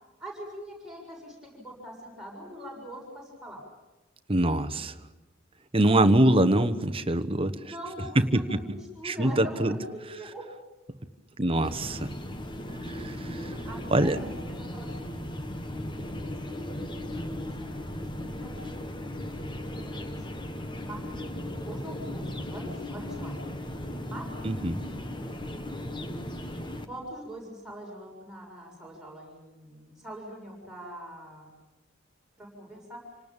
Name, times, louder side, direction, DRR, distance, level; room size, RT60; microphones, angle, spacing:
voice 1, 0.2-3.6 7.6-10.5 13.6-18.5 19.6-20.3 20.8-23.4 24.0-25.3 26.8-31.5 32.4-33.1, equal, 5° right, -3 dB, 6.9 m, -43 dB
voice 2, 4.3-4.9 5.7-7.5 8.2-8.4 9.0-9.8 11.4-12.1 12.9-13.5 13.9-14.2 24.4-24.8, right 1 dB, 30° right, 10 dB, 1.2 m, -24 dB
sound 1, 11.6-26.8, left 1 dB, 25° left, 1.4 m, -37 dB
28.0 x 19.0 x 8.9 m, 1.1 s
head